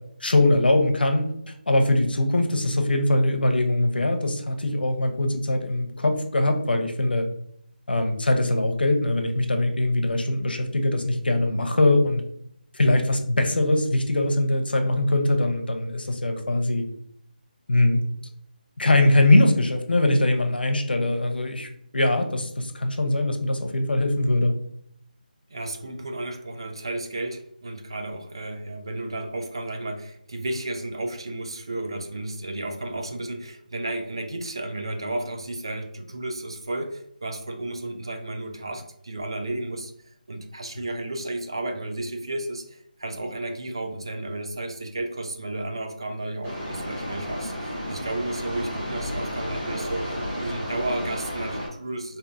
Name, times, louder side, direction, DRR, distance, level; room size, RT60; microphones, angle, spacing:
voice 1, 0.2-7.3 7.9-12.2 12.7-16.8 17.7-18.0 18.8-24.5, left 2 dB, 90° left, 5 dB, 0.8 m, -22 dB
voice 2, 25.5-52.2, right 2 dB, 30° right, 5 dB, 0.4 m, -33 dB
sound 1, 46.4-51.7, equal, 15° right, 1.0 m, -32 dB
4.6 x 2.7 x 2.6 m, 0.71 s
figure-of-eight pair, 180°, 5 cm